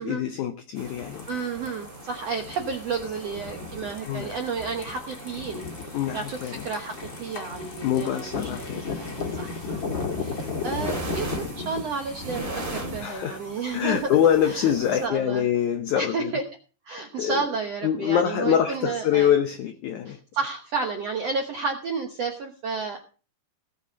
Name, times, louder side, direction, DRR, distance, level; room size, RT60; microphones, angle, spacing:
voice 1, 0.0-1.3 4.1-4.4 5.9-6.7 7.8-9.0 13.0-13.4 13.7-16.3 17.2-17.5 17.8-20.2, left 10 dB, 80° left, 1.7 m, -25 dB
sound 1, 0.7-15.1, right 1 dB, 15° right, 2.1 m, -40 dB
sound 2, 1.0-11.8, left 4 dB, 35° left, 2.3 m, -35 dB
voice 2, 1.3-8.7 9.0-9.8 10.1-14.2 14.4-14.7 15.0-15.5 15.9-16.4 16.8-19.3 20.0-23.0, right 4 dB, 70° right, 1.5 m, -31 dB
17.5 x 7.2 x 5.2 m
omnidirectional pair, 4.6 m